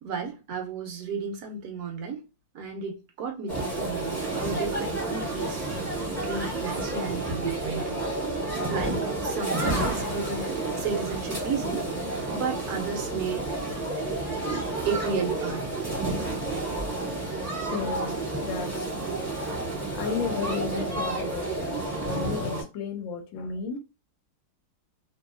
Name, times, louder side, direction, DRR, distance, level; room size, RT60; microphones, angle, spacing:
voice 1, 0.0-2.3 2.5-5.7 6.2-8.0 8.7-10.5 10.8-11.9 12.3-13.5 14.8-15.7, right 5 dB, 65° right, 1.0 m, -33 dB
sound 1, 3.5-22.6, right 2 dB, 10° right, 1.1 m, -30 dB
Thunder, 9.5-16.6, left 3 dB, 50° left, 0.9 m, -44 dB
voice 2, 17.7-18.1 18.4-19.2 19.9-21.8 22.1-23.8, left 5 dB, 80° left, 1.4 m, -33 dB
3.0 x 2.7 x 2.4 m
omnidirectional pair, 2.1 m